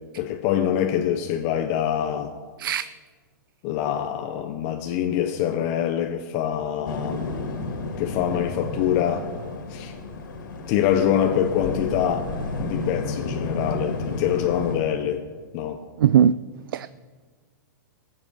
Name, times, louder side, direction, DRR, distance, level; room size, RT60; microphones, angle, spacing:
voice 1, 0.2-2.3 3.6-7.3 8.0-9.3 9.7-9.9 10.7-12.3 12.6-15.2 15.5-15.8, left 10 dB, 25° left, 0.6 m, -25 dB
sound 1, 6.8-14.8, left 3 dB, 65° left, 2.2 m, -31 dB
voice 2, 16.0-16.3 16.7-16.9, right 9 dB, 75° right, 0.4 m, -18 dB
20.0 x 7.5 x 5.4 m
hypercardioid pair, 170°, 11 cm